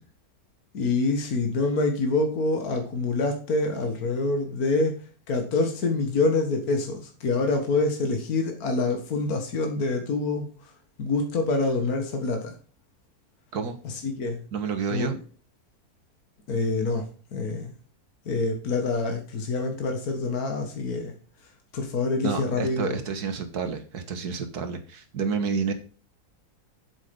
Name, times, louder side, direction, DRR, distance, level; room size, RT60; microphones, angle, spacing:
voice 1, 0.7-5.0 5.3-10.5 11.0-12.6 13.8-14.4 14.9-15.2 16.5-17.0 17.3-17.7 18.3-21.1 21.7-23.0, left 3 dB, 70° left, 4 dB, 2.0 m, -26 dB
voice 2, 14.5-15.2 22.2-25.7, right 6 dB, 80° right, 8 dB, 2.0 m, -29 dB
7.8 x 7.4 x 5.2 m, 0.39 s
omnidirectional pair, 1.7 m